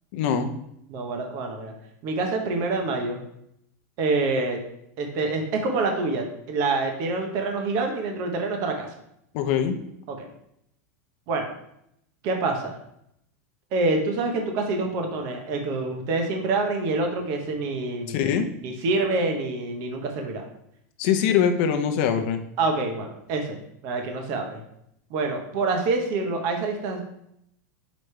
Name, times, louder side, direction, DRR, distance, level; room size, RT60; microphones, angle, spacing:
voice 1, 0.1-0.5 9.3-9.8 18.1-18.5 21.0-22.4, left 8 dB, 40° left, 7 dB, 0.6 m, -23 dB
voice 2, 0.9-1.7 2.0-3.2 4.0-4.6 5.0-8.9 10.1-10.3 11.3-11.5 12.2-12.8 13.7-18.3 18.6-20.4 22.6-24.6 25.1-27.0, right 3 dB, 35° right, 3 dB, 0.8 m, -26 dB
6.3 x 5.0 x 3.2 m, 0.77 s
supercardioid pair, 175°, 9 cm